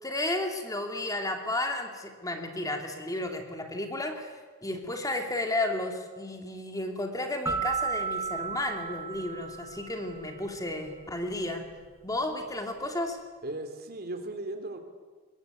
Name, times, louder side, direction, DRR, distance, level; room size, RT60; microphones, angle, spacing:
voice 1, 0.0-11.7 12.0-13.2, left 1 dB, 15° left, 4 dB, 2.5 m, -33 dB
sound 1, 7.5-10.2, right 5 dB, 10° right, 1.6 m, -33 dB
voice 2, 13.4-14.8, right 2 dB, 45° right, 7 dB, 3.1 m, -37 dB
23.5 x 21.5 x 9.5 m, 1.4 s
head